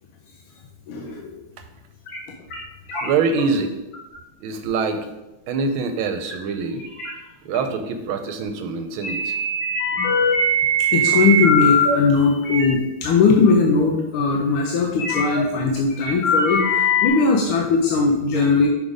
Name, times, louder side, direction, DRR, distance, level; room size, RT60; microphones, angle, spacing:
voice 1, 0.9-1.4 10.9-18.7, left 4 dB, 85° left, 1 dB, 1.6 m, -19 dB
sound 1, 2.1-2.2 2.5-2.6 2.9-3.4 3.9-4.2 4.6-4.7 6.3-6.4 6.8-7.1 7.5-7.6 9.0-11.9 12.4-12.7 13.5-13.6 13.8-13.9 15.0-15.4 15.9-17.1, left 1 dB, 70° left, 2.2 m, -21 dB
voice 2, 3.0-3.7 4.4-5.1 5.5-6.8 7.5-9.3 18.3-18.6, right 4 dB, 85° right, 7 dB, 1.5 m, -24 dB
6.6 x 4.9 x 3.9 m, 0.99 s
omnidirectional pair, 2.2 m